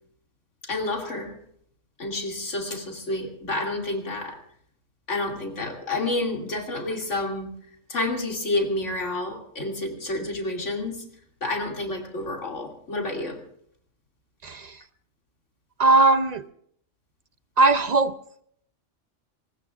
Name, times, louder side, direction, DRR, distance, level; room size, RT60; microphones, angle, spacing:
voice 1, 0.6-1.3 2.0-4.4 5.1-7.5 7.9-11.0 11.4-13.4, left 2 dB, 70° left, 1 dB, 3.0 m, -29 dB
voice 2, 15.8-16.4 17.6-18.1, right 2 dB, 45° right, 11 dB, 0.6 m, -19 dB
24.5 x 20.0 x 2.5 m, 0.65 s
omnidirectional pair, 1.3 m